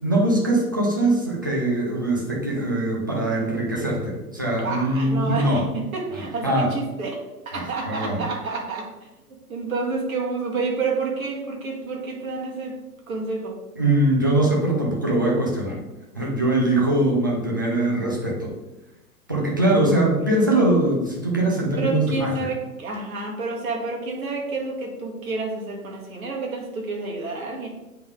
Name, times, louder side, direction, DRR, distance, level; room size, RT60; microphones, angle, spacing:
voice 1, 0.0-5.6 6.1-6.7 7.5-8.2 13.8-15.8 16.1-18.5 19.3-22.5, right 1 dB, 15° right, -3 dB, 0.3 m, -22 dB
voice 2, 4.6-8.9 9.3-12.8 13.1-13.6 19.8-20.0 21.8-27.7, right 3 dB, 60° right, 0 dB, 1.6 m, -29 dB
7.8 x 3.6 x 3.5 m, 1.1 s
figure-of-eight pair, 110°, 47 cm